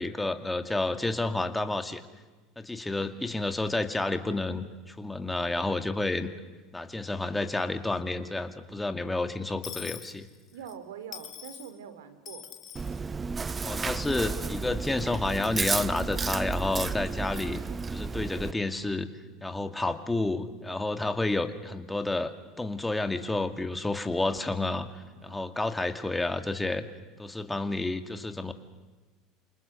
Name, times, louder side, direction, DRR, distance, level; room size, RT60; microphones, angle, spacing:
voice 1, 0.0-2.0 2.6-6.3 6.7-10.3 13.6-17.6 17.9-19.1 19.4-24.9 25.2-26.8 27.2-28.5, left 2 dB, 10° left, 7 dB, 2.2 m, -30 dB
Dishes pots and pans / Coin (dropping), 9.6-10.7 11.1-11.7 12.2-13.0 13.8-14.4, left 9 dB, 45° left, 3.1 m, -43 dB
voice 2, 10.5-12.5 25.1-25.6, right 8 dB, 80° right, 11 dB, 2.4 m, -44 dB
Chewing mastication, 12.7-18.5, right 4 dB, 25° right, 0.8 m, -32 dB
28.5 x 27.5 x 6.5 m, 1.3 s
hypercardioid pair, 75°, 0 cm